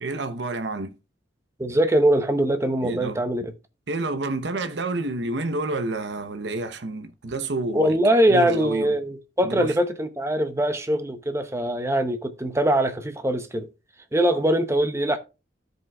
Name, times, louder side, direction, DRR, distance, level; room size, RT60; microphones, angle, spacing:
voice 1, 0.0-0.9 2.8-3.2 3.9-8.0 8.3-9.0 9.4-9.7, right 2 dB, 70° right, 0.8 m, -29 dB
voice 2, 1.6-3.5 7.7-13.7 14.1-15.2, right 1 dB, 15° right, 0.7 m, -22 dB
15.5 x 5.3 x 2.3 m
head